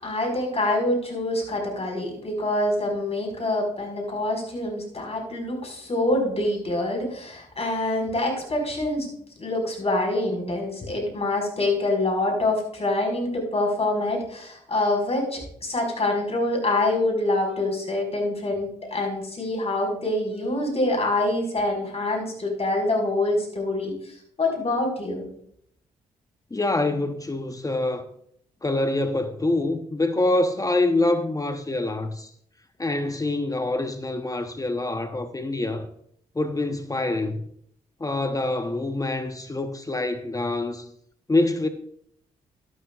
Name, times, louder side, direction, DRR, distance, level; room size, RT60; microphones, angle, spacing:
voice 1, 0.0-25.3, left 2 dB, 40° left, 5.1 m, -26 dB
voice 2, 26.5-28.0 28.6-32.3 32.8-35.9 36.3-37.4 38.0-40.9 41.3-41.7, left 2 dB, 20° left, 1.0 m, -25 dB
12.5 x 12.0 x 2.4 m
hypercardioid pair, 45°, 16 cm